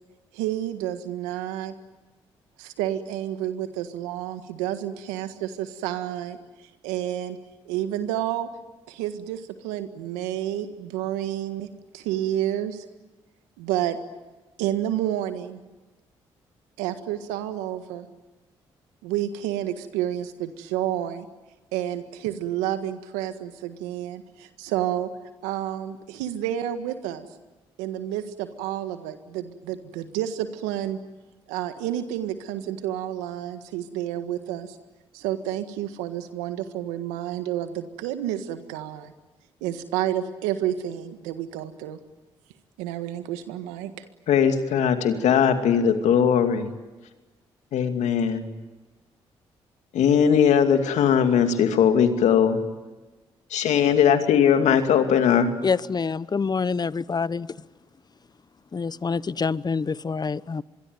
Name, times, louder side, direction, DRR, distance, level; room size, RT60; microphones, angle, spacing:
voice 1, 0.3-1.7 2.6-7.4 7.7-8.5 8.9-11.7 11.9-12.8 13.6-14.0 14.6-15.6 16.8-18.1 19.0-21.3 21.7-25.1 25.4-27.3 27.8-31.0 31.5-34.8 35.1-39.1 39.6-42.0 42.8-44.0, right 12 dB, 90° right, 10 dB, 1.6 m, -30 dB
voice 2, 44.3-46.7 47.7-48.4 49.9-52.6 53.5-55.5, left 8 dB, 75° left, 7 dB, 2.5 m, -19 dB
voice 3, 55.6-57.5 58.7-60.6, left 5 dB, 35° left, 19 dB, 0.9 m, -26 dB
25.5 x 22.5 x 9.5 m, 1.2 s
hypercardioid pair, 50°, 12 cm